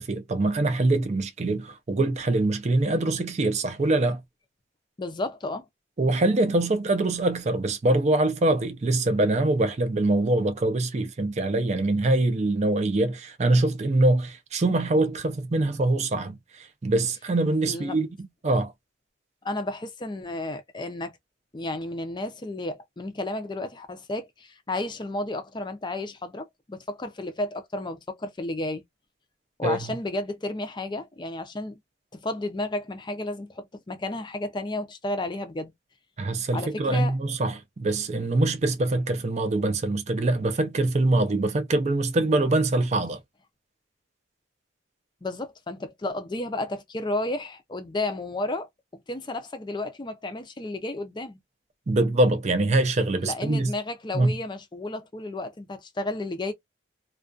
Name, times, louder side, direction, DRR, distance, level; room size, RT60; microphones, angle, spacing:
voice 1, 0.0-4.2 6.0-18.1 18.4-18.7 29.6-29.9 36.2-43.2 51.9-53.7 54.1-54.3, right 2 dB, 35° right, 0.4 m, -24 dB
voice 2, 5.0-5.6 17.6-18.0 19.4-21.1 21.5-28.8 29.6-31.8 32.1-35.7 36.5-37.2 45.2-48.7 49.1-51.4 53.2-56.5, left 2 dB, 20° left, 0.4 m, -32 dB
2.3 x 2.2 x 2.4 m
head